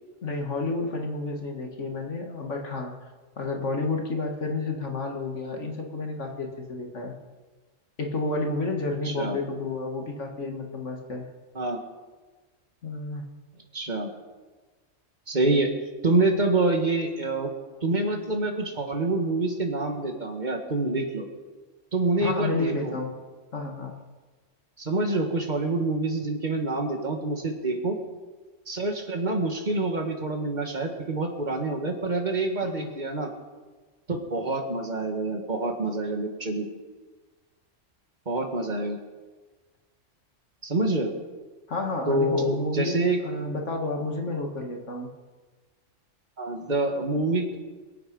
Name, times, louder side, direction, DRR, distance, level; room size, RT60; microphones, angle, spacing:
voice 1, 0.2-2.9 3.4-7.2 8.0-11.3 12.8-13.3 22.2-23.1 23.5-24.0 32.6-32.9 41.7-45.1, left 2 dB, 70° left, 3 dB, 2.0 m, -30 dB
voice 2, 9.1-9.4 11.6-11.8 13.7-14.1 15.3-15.7 16.0-17.5 17.8-21.3 21.9-22.9 24.8-28.0 28.7-33.3 34.1-36.7 38.3-39.0 40.6-41.1 42.1-43.2 46.4-47.6, right 2 dB, 35° right, 3 dB, 1.9 m, -26 dB
23.0 x 8.7 x 5.4 m, 1.3 s
omnidirectional pair, 1.3 m